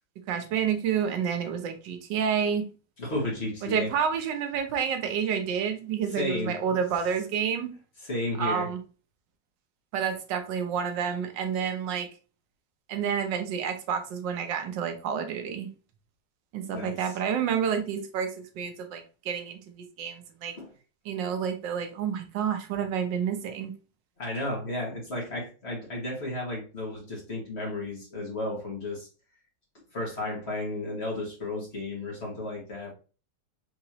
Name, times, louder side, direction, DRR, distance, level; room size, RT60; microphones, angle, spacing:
voice 1, 0.3-2.7 3.6-7.7 8.4-8.8 9.9-12.1 12.9-15.7 16.5-20.5 21.1-23.7, right 7 dB, 80° right, 1.4 m, -29 dB
voice 2, 3.0-3.9 6.1-6.8 8.0-8.7 16.7-17.1 20.5-20.7 24.2-29.1 29.9-32.9, left 2 dB, 40° left, 1.7 m, -33 dB
4.8 x 2.9 x 2.7 m
omnidirectional pair, 1.9 m